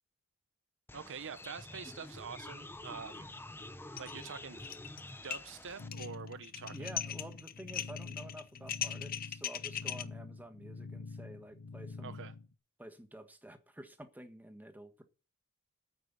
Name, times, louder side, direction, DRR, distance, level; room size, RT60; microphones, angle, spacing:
sound 1, 0.9-5.9, left 2 dB, 10° left, 0.8 m, -48 dB
voice 1, 0.9-3.3 4.0-4.6 5.2-6.9 12.0-12.3, right 6 dB, 60° right, 0.8 m, -45 dB
sound 2, 4.0-4.2 4.5-5.0 5.3-10.0, left 10 dB, 40° left, 0.7 m, -39 dB
sound 3, 5.8-12.5, left 3 dB, 75° left, 1.0 m, -47 dB
voice 2, 6.7-12.2 12.8-15.0, right 1 dB, 10° right, 1.5 m, -50 dB
9.4 x 8.6 x 9.6 m
head